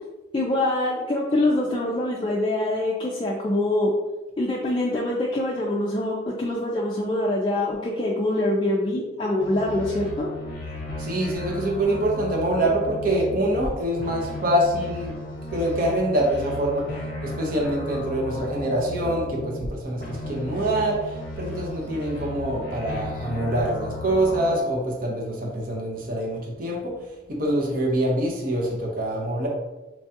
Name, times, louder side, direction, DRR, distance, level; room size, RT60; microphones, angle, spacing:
voice 1, 0.3-3.9 4.4-10.3, left 1 dB, 25° left, -3 dB, 0.3 m, -24 dB
sound 1, 9.4-13.7 14.0-19.7 20.0-24.6, left 1 dB, 50° left, 0.7 m, -34 dB
voice 2, 11.0-15.1 15.5-16.8 17.2-26.9 27.3-29.5, right 1 dB, 50° right, -1 dB, 0.7 m, -25 dB
4.4 x 2.3 x 2.7 m, 1.1 s
head